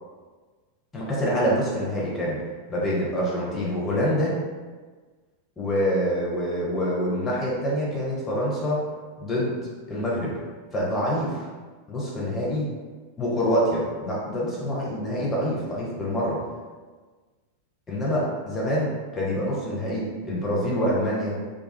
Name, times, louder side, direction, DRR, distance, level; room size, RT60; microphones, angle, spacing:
voice 1, 0.9-2.4 2.7-4.3 5.6-8.8 9.2-9.6 9.9-10.3 10.7-11.4 11.9-12.7 13.2-16.4 17.9-21.3, equal, 15° left, -6 dB, 0.8 m, -26 dB
2.4 x 2.3 x 2.3 m, 1.4 s
figure-of-eight pair, 90°, 0 cm